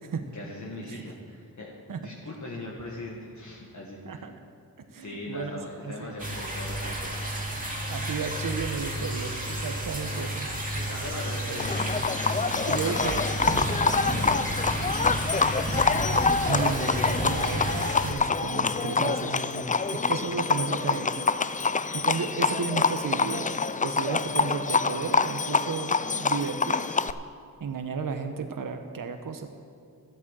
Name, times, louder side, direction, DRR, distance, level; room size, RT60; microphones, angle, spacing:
voice 1, 0.3-1.7 2.0-4.2 5.0-7.1 10.7-12.2 12.5-13.0 13.8-15.5, left 2 dB, 55° left, -4 dB, 1.8 m, -40 dB
voice 2, 4.8-5.6 5.8-6.1 7.9-10.5 11.5-11.6 12.6-13.2 16.4-21.3 21.9-27.0 27.6-29.5, right 5 dB, 65° right, 6 dB, 0.9 m, -33 dB
sound 1, 6.2-18.1, right 1 dB, 25° right, 2.3 m, -31 dB
Livestock farm animals working animals, 11.6-27.1, left 4 dB, 25° left, 0.4 m, -26 dB
12.5 x 8.6 x 7.4 m, 2.3 s
cardioid pair, 65°, 35 cm